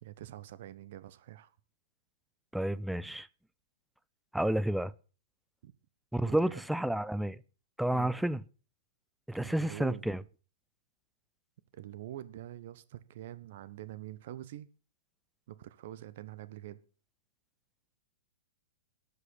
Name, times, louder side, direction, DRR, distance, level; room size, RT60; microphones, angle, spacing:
voice 1, 0.0-1.5 5.6-5.7 6.2-6.6 7.9-8.1 9.4-10.1 11.7-14.7 15.5-16.8, right 13 dB, 55° right, 1.0 m, -45 dB
voice 2, 2.5-3.3 4.3-4.9 6.1-7.4 7.8-8.4 9.3-10.2, right 1 dB, ahead, 0.6 m, -30 dB
12.5 x 8.0 x 7.0 m
figure-of-eight pair, 105°, 0 cm